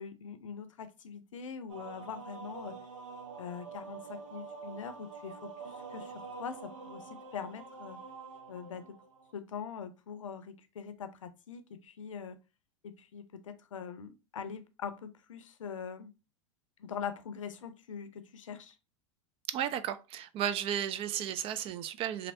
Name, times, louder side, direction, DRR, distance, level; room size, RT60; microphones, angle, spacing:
voice 1, 0.0-2.8 3.4-6.1 6.4-8.0 8.5-9.0 9.3-12.4 12.8-16.1 16.8-18.8, left 7 dB, 85° left, 0.5 m, -43 dB
sound 1, 1.7-9.3, right 5 dB, 80° right, 0.6 m, -46 dB
voice 2, 19.5-22.3, right 10 dB, 35° right, 0.3 m, -34 dB
3.1 x 2.6 x 2.5 m
hypercardioid pair, 95°, 16 cm